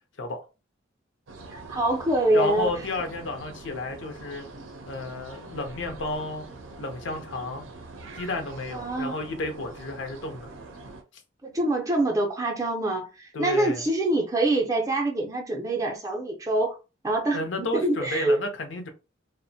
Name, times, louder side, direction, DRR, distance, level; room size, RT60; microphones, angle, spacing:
sound 1, 1.3-11.0, right 2 dB, 90° right, 0.5 m, -44 dB
voice 1, 1.5-2.7 8.7-9.2 11.4-16.8 17.0-18.4, right 2 dB, 15° right, 0.4 m, -25 dB
voice 2, 2.3-4.4 4.9-6.5 6.8-7.6 8.2-10.5 13.3-13.8 17.3-18.9, left 2 dB, 75° left, 0.6 m, -32 dB
2.5 x 2.0 x 2.6 m
head